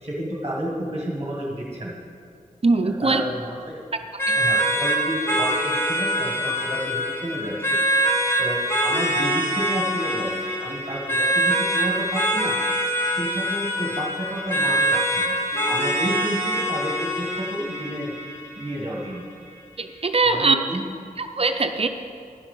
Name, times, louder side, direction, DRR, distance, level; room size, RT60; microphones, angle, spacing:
voice 1, 0.0-2.0 2.8-3.8 4.3-12.6 13.1-19.2 20.3-20.8, right 1 dB, 20° right, -2 dB, 1.5 m, -31 dB
voice 2, 2.6-3.2 4.3-4.4 19.8-20.6 21.2-21.9, right 3 dB, 40° right, 7 dB, 0.6 m, -21 dB
sound 1, 4.2-19.2, right 1 dB, 15° left, 1.7 m, -24 dB
10.5 x 7.2 x 5.5 m, 2.3 s
wide cardioid pair, 75°, 15 cm